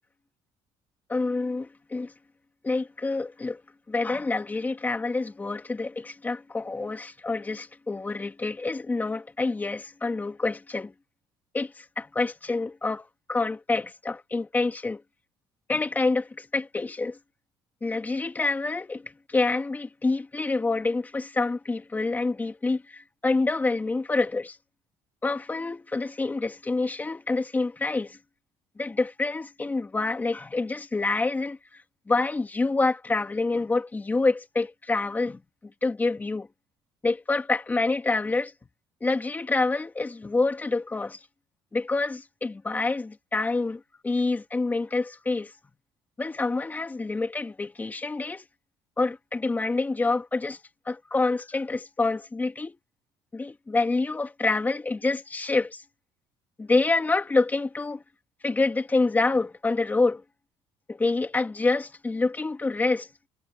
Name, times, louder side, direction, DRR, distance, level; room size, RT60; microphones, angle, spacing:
voice 1, 1.1-2.1 2.6-3.6 3.9-10.9 11.5-15.0 15.7-17.2 17.8-24.6 25.2-28.2 28.8-31.6 32.1-35.4 35.8-36.5 37.0-38.5 39.0-41.2 41.7-45.5 46.2-48.4 49.0-50.6 50.9-52.8 53.3-55.8 56.6-58.0 58.4-60.2 60.9-63.1, left 3 dB, 15° left, 2.6 m, -27 dB
cardioid pair, 135°, 10 cm